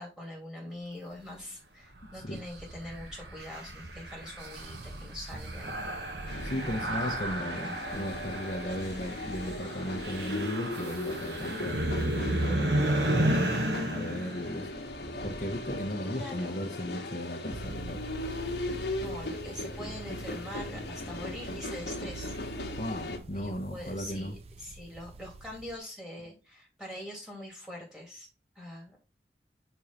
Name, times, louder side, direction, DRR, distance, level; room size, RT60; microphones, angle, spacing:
voice 1, 0.0-5.8 6.8-7.8 16.1-16.6 19.0-22.3 23.3-28.3 28.6-29.0, left 1 dB, 5° right, 2.4 m, -43 dB
sound 1, 1.9-15.8, right 1 dB, 80° right, 1.2 m, -33 dB
sound 2, 6.3-23.2, left 2 dB, 80° left, 1.3 m, -38 dB
voice 2, 6.4-11.8 12.3-13.5 13.9-14.7 15.2-18.0 22.8-24.3, equal, 45° left, 1.0 m, -36 dB
sound 3, 17.5-25.8, right 3 dB, 35° right, 0.5 m, -44 dB
5.1 x 4.7 x 4.3 m
head